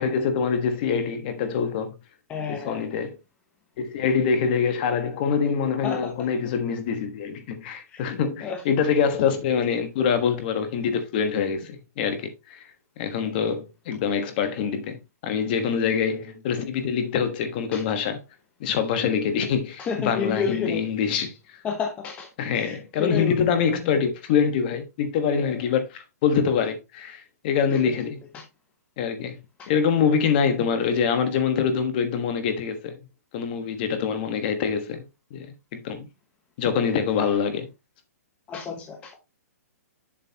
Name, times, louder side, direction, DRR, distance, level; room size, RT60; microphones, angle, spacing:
voice 1, 0.0-1.9 2.5-3.1 3.8-12.6 13.0-18.2 18.6-21.6 22.4-28.2 29.0-29.4 29.7-33.0 33.3-35.0 35.3-36.1 36.6-37.7, left 6 dB, 35° left, 1.3 m, -25 dB
voice 2, 2.3-2.8 5.8-6.1 7.9-8.0 8.4-8.6 17.7-17.8 19.8-20.8 21.6-22.3 22.5-23.4 27.7-27.9 28.3-28.4 29.6-29.7 38.5-39.2, left 6 dB, 15° left, 1.0 m, -30 dB
7.5 x 6.6 x 2.8 m
hypercardioid pair, 160°, 9 cm